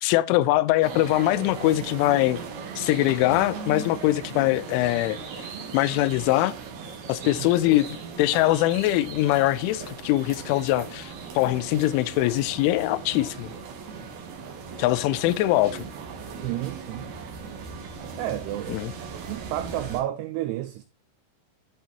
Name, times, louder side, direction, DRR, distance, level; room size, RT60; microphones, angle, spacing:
voice 1, 0.0-2.4 2.8-5.2 5.7-6.6 7.1-13.5 14.8-15.8 18.7-18.9, left 16 dB, 85° left, 3.0 m, -22 dB
sound 1, 0.8-20.0, right 5 dB, 65° right, 3.3 m, -38 dB
voice 2, 16.3-17.2 18.2-18.8 19.1-20.8, right 13 dB, 90° right, 2.3 m, -31 dB
13.0 x 5.5 x 2.8 m
omnidirectional pair, 5.5 m